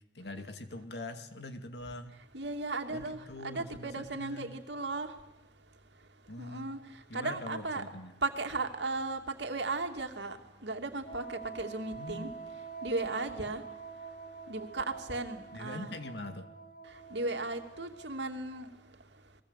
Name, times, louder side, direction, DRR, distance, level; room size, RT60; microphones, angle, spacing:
voice 1, 0.1-2.2 2.9-4.5 6.3-6.7 7.1-8.1 11.9-12.3 15.5-16.5, left 2 dB, 65° left, 2.3 m, -43 dB
voice 2, 2.3-5.1 6.4-6.8 7.1-7.8 8.2-10.4 10.6-12.3 12.8-13.6 14.5-16.0 17.1-18.7, right 3 dB, 75° right, 2.7 m, -36 dB
Wind instrument woodwind instrument, 11.0-18.4, right 5 dB, 50° left, 4.2 m, -46 dB
29.0 x 22.0 x 8.3 m
head